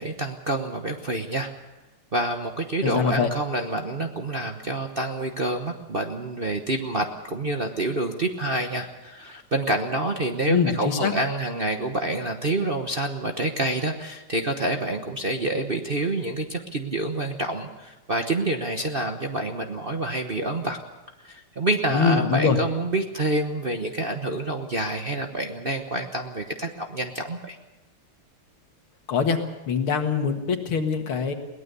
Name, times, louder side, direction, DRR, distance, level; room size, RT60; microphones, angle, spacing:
voice 1, 0.0-1.5 2.1-20.8 21.2-27.6, right 2 dB, 35° right, 3 dB, 0.9 m, -27 dB
voice 2, 2.8-3.3 10.5-11.1 21.9-22.6 29.1-29.4 29.7-31.3, left 6 dB, 75° left, 5 dB, 2.6 m, -23 dB
22.5 x 18.0 x 6.9 m, 1.1 s
omnidirectional pair, 2.4 m